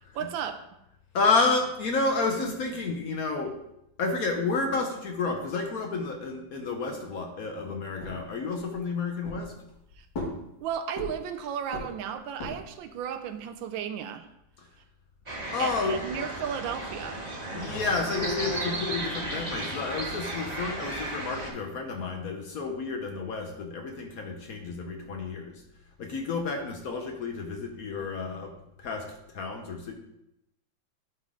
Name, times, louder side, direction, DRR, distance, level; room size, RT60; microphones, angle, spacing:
voice 1, 0.1-0.6 10.0-10.1 10.6-14.3 15.6-17.3, right 8 dB, 90° right, 9 dB, 1.4 m, -34 dB
voice 2, 1.1-3.6 4.0-9.5 14.6-14.7 15.5-16.0 17.5-25.6 26.0-29.9, left 4 dB, 60° left, 3 dB, 1.0 m, -30 dB
sound 1, 8.0-8.8 9.2-9.8 10.1-11.4 11.7-12.8, left 2 dB, 80° left, 2.7 m, -38 dB
sound 2, 15.3-21.5, right 2 dB, 25° right, 1.2 m, -35 dB
sound 3, 17.5-20.5, left 1 dB, 35° left, 1.6 m, -39 dB
11.0 x 3.8 x 3.7 m, 0.83 s
omnidirectional pair, 2.1 m